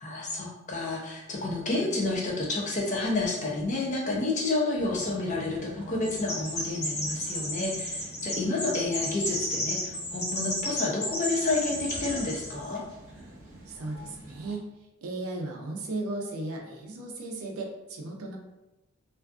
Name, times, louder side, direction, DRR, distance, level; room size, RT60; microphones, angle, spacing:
voice 1, 0.0-12.8, left 2 dB, 35° left, -2 dB, 0.5 m, -30 dB
sound 1, 4.8-14.5, right 1 dB, 40° right, 0.8 m, -46 dB
Chirp tweet, 6.0-12.5, left 1 dB, 75° left, 0.9 m, -33 dB
voice 2, 13.7-14.7 15.0-18.4, right 2 dB, 75° right, 1 dB, 0.5 m, -36 dB
2.5 x 2.3 x 2.3 m, 0.97 s
head